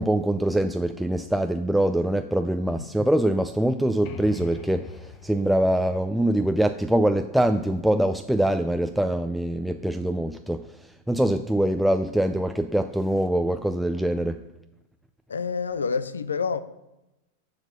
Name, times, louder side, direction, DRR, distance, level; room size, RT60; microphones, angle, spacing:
voice 1, 0.0-10.6 11.1-14.4, right 1 dB, ahead, 0.3 m, -24 dB
sound 1, 4.0-7.7, left 6 dB, 50° left, 0.9 m, -43 dB
voice 2, 15.3-16.6, left 5 dB, 90° left, 0.4 m, -27 dB
7.4 x 5.0 x 6.6 m
hypercardioid pair, 100°, 0 cm